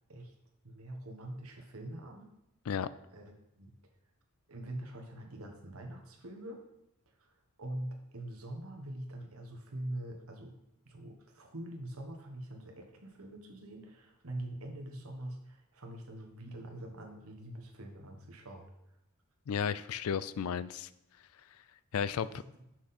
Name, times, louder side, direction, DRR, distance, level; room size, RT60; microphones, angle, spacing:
voice 1, 0.6-2.3 3.1-3.7 4.5-6.6 7.2-7.3 7.6-10.5 10.8-18.7 22.3-22.4, right 1 dB, 70° right, 2 dB, 1.4 m, -44 dB
voice 2, 19.5-20.9 21.9-22.3, left 7 dB, 70° left, 16 dB, 0.4 m, -33 dB
7.6 x 5.9 x 4.2 m, 0.86 s
head